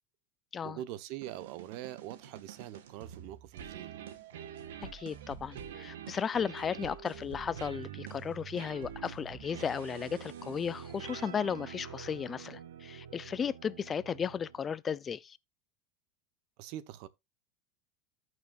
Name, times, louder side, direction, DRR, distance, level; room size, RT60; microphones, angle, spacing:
voice 1, 0.6-4.0 16.6-17.1, right 13 dB, 65° right, 1.0 m, -43 dB
sound 1, 1.2-14.7, right 8 dB, 85° right, 1.5 m, -46 dB
voice 2, 4.9-15.4, left 7 dB, 30° left, 0.5 m, -35 dB
14.5 x 6.3 x 2.4 m
supercardioid pair, 110°, 0 cm